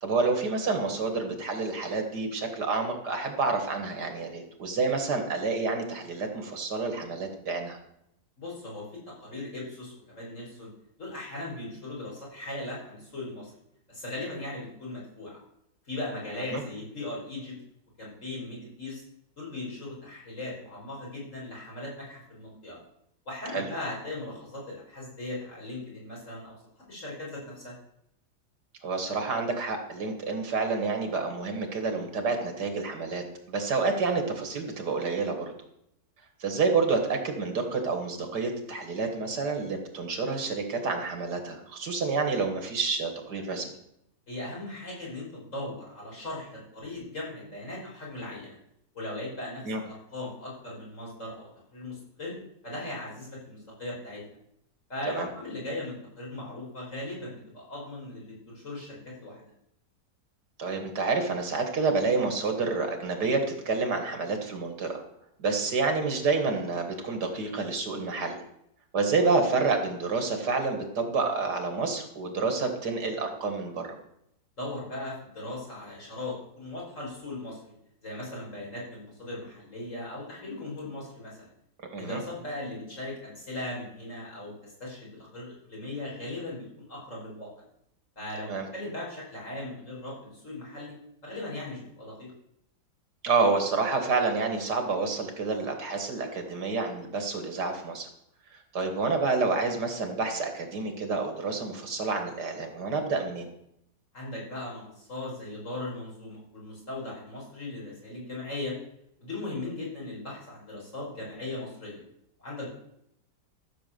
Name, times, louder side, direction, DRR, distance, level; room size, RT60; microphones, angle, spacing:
voice 1, 0.0-7.8 16.3-16.6 23.5-23.7 28.8-35.5 36.4-43.7 49.6-49.8 55.1-55.3 60.6-65.0 65.4-68.4 68.9-74.0 81.9-82.2 88.5-88.7 93.2-98.1 98.5-103.5, right 4 dB, 75° right, 5 dB, 2.4 m, -29 dB
voice 2, 8.4-10.7 11.0-13.5 13.9-15.3 15.9-17.6 18.0-19.0 19.4-22.8 23.3-26.6 26.9-27.8 44.3-48.6 48.9-52.3 52.6-54.2 54.9-59.4 74.6-77.7 78.0-81.5 82.0-87.5 88.2-91.0 91.2-92.3 104.1-108.7 109.2-112.0 112.4-112.7, left 2 dB, 45° left, -4 dB, 5.3 m, -38 dB
14.0 x 6.8 x 7.0 m, 0.77 s
omnidirectional pair, 1.8 m